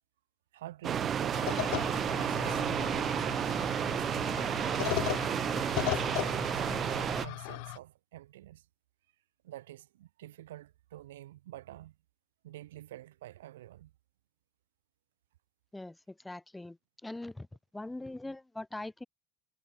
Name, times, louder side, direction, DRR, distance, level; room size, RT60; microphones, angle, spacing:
voice 1, 0.5-1.6 2.1-4.4 5.8-8.6 9.4-12.0 12.4-13.9, right 14 dB, 85° right, 3.4 m, -48 dB
sound 1, 0.8-7.3, right 8 dB, 40° right, 0.4 m, -31 dB
sound 2, 1.3-7.8, left 38 dB, 70° left, 1.2 m, -37 dB
voice 2, 16.2-16.8 17.0-17.5 17.7-19.1, left 2 dB, 10° left, 1.3 m, -41 dB
hypercardioid pair, 80°, 0 cm